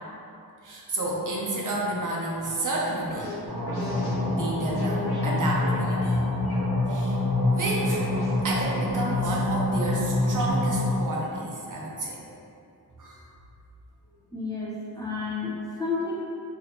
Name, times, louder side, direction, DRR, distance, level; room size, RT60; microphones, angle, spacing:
voice 1, 0.6-3.4 3.8-3.9 4.2-6.3 6.9-7.2 7.5-8.0 8.4-12.2 13.0-13.2, right 2 dB, 50° right, -4 dB, 0.7 m, -31 dB
sound 1, 3.1-4.2 4.6-6.2 6.4-7.3 7.8-8.9, left 2 dB, 70° left, 0.9 m, -37 dB
sound 2, 3.5-11.0, left 2 dB, 70° right, 1.0 m, -26 dB
voice 2, 14.3-16.1, left 4 dB, 10° left, -8 dB, 0.7 m, -31 dB
4.0 x 2.8 x 2.8 m, 2.7 s
wide cardioid pair, 80°, 39 cm